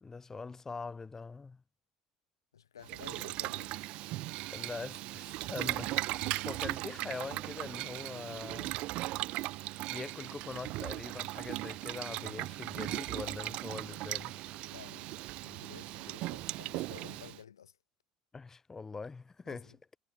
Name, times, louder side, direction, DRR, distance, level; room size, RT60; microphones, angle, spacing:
voice 1, 0.0-1.6 4.5-8.7 9.6-14.3 18.3-19.7, left 4 dB, 20° left, 0.8 m, -43 dB
voice 2, 2.5-3.8 14.7-17.8 19.5-19.8, left 8 dB, 80° left, 1.9 m, -53 dB
Boiling, 2.8-17.4, right 19 dB, 55° right, 0.4 m, -38 dB
sound 1, 5.5-15.5, right 2 dB, 10° right, 7.0 m, -64 dB
figure-of-eight pair, 60°, 2 cm